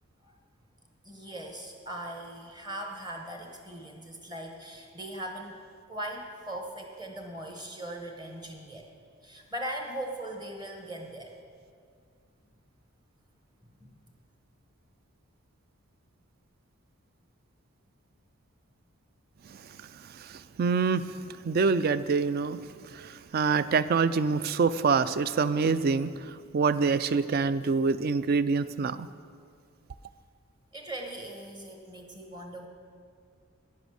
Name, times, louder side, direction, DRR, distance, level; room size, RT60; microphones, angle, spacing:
voice 1, 1.0-5.6 5.9-8.9 9.2-11.4 13.8-14.0 30.7-32.7, right 1 dB, 20° right, 3 dB, 1.1 m, -39 dB
voice 2, 20.1-21.1 21.4-22.6 22.9-29.1, right 5 dB, 45° right, 15 dB, 0.3 m, -26 dB
10.5 x 9.8 x 6.3 m, 2.2 s
head